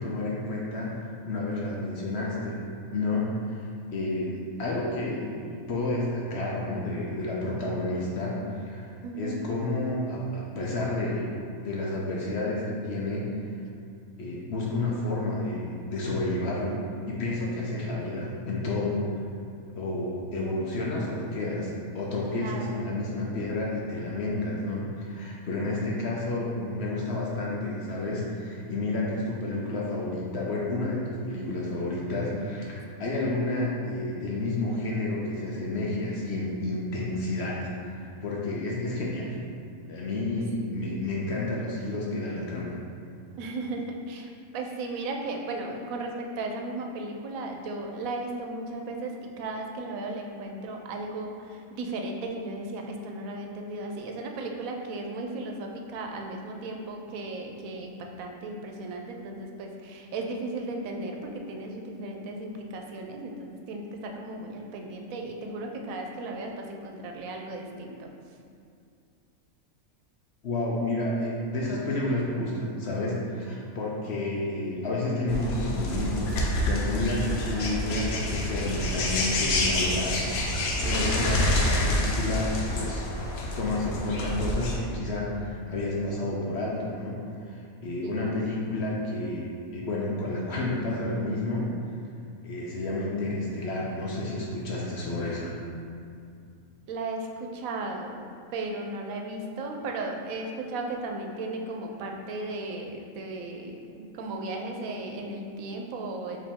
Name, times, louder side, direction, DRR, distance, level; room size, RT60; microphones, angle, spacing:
voice 1, 0.0-2.6 2.9-11.3 11.6-13.3 14.2-16.8 17.0-19.0 19.8-39.4 39.9-42.8 70.4-76.3 76.6-80.2 80.8-83.0 83.6-91.7 92.4-95.5, left 2 dB, 60° left, -4 dB, 0.8 m, -30 dB
voice 2, 9.0-9.4 22.4-23.0 40.8-41.0 43.4-68.1 77.1-77.3 80.8-81.3 88.0-88.3 96.9-98.2 98.5-106.4, right 2 dB, 80° right, 2 dB, 1.0 m, -36 dB
sound 1, 75.3-84.8, left 1 dB, 90° left, 1.1 m, -27 dB
4.9 x 2.9 x 3.5 m, 2.4 s
omnidirectional pair, 1.5 m